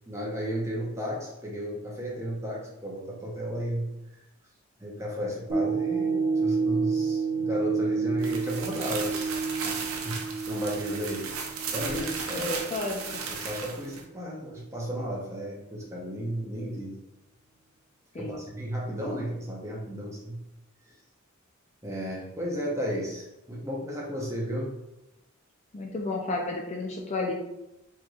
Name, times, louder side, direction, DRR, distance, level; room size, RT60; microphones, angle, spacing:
voice 1, 0.1-3.9 4.8-11.3 11.7-12.5 13.3-17.0 18.2-20.4 20.9-21.0 21.8-24.7, equal, 15° right, -4 dB, 0.9 m, -34 dB
sound 1, 5.5-13.9 14.4-14.5, right 4 dB, 45° right, 0.9 m, -30 dB
sound 2, 8.2-14.0, right 5 dB, 85° right, 0.6 m, -36 dB
voice 2, 12.3-13.2 18.1-18.4 25.7-27.3, left 2 dB, 35° left, 0 dB, 0.4 m, -32 dB
4.4 x 3.1 x 2.4 m, 0.91 s
head